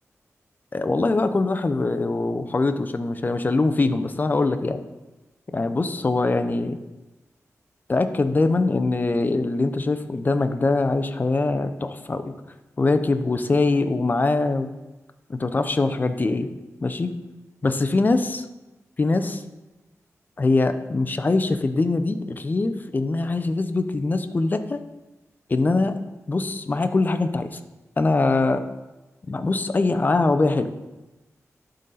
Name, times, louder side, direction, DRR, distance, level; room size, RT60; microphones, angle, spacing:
voice 1, 0.7-4.8 5.5-6.8 7.9-12.3 12.8-14.7 15.3-16.5 16.8-17.1 17.6-18.4 19.0-19.4 20.4-24.8 25.5-25.9 26.3-27.6 28.0-28.6 29.3-30.9, left 3 dB, 35° left, 9 dB, 0.5 m, -23 dB
11.5 x 3.9 x 4.0 m, 1.1 s
wide cardioid pair, 90°, 6 cm